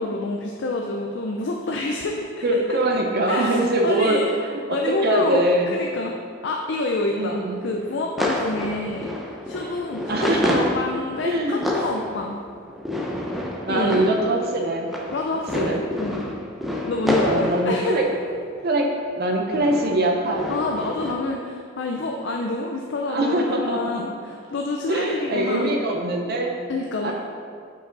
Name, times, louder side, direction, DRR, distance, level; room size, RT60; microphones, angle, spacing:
voice 1, 0.0-2.4 3.3-4.3 4.7-6.1 6.4-9.1 9.5-12.4 13.7-14.0 15.1-16.2 16.9-18.0 20.5-25.7 26.7-27.1, left 2 dB, 60° left, 1 dB, 0.5 m, -27 dB
voice 2, 2.4-5.8 7.1-7.6 10.1-10.6 11.2-11.6 13.6-14.9 15.6-15.8 17.2-18.1 18.6-20.5 23.1-24.0 24.9-26.6 27.0-27.1, right 1 dB, 50° right, 2 dB, 0.7 m, -23 dB
sound 1, 7.2-18.6 19.3-21.1, left 1 dB, ahead, 0.6 m, -29 dB
6.6 x 5.2 x 3.9 m, 2.2 s
head